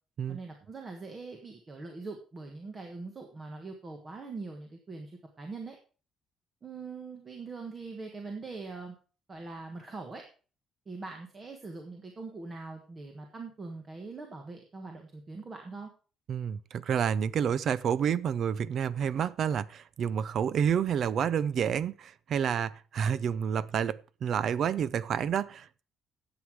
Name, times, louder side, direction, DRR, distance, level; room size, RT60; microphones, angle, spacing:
voice 1, 0.3-5.8 6.6-8.9 9.3-10.2 10.8-15.9, right 3 dB, 20° right, 1.4 m, -42 dB
voice 2, 16.3-25.8, right 8 dB, 45° right, 0.5 m, -29 dB
11.5 x 8.0 x 4.7 m
cardioid pair, 175°, 0 cm